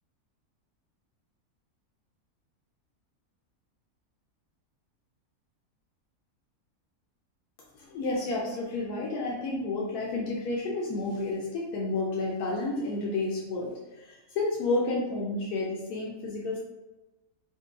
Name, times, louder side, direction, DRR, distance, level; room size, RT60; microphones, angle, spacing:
voice 1, 7.8-16.6, left 2 dB, 85° left, -3 dB, 1.2 m, -31 dB
4.8 x 2.2 x 3.4 m, 1.1 s
omnidirectional pair, 1.6 m